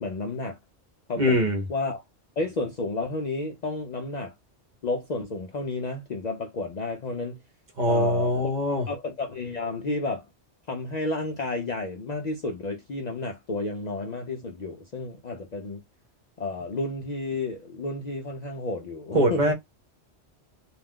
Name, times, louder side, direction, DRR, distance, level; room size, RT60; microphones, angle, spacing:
voice 1, 0.0-0.6 1.1-2.0 2.4-4.3 4.8-7.4 7.9-8.5 8.9-10.3 10.7-15.8 16.4-19.4, left 2 dB, 55° left, 0.5 m, -31 dB
voice 2, 1.2-1.6 7.8-8.9 19.1-19.5, equal, 45° right, 0.8 m, -23 dB
2.4 x 2.3 x 3.5 m
omnidirectional pair, 1.2 m